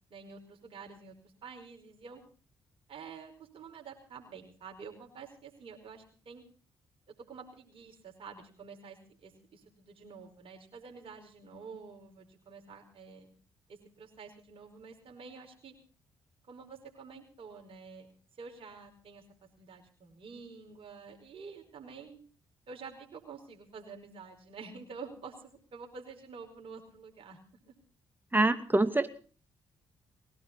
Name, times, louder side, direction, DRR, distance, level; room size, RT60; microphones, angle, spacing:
voice 1, 0.1-2.2 2.9-6.4 7.2-13.3 13.7-15.7 16.5-18.1 18.4-22.2 22.7-27.4 27.7-27.8, right 5 dB, 55° right, 3 dB, 5.2 m, -49 dB
voice 2, 28.3-29.2, right 2 dB, 15° right, 10 dB, 2.4 m, -26 dB
20.0 x 18.0 x 4.0 m, 0.39 s
hypercardioid pair, 45°, 11 cm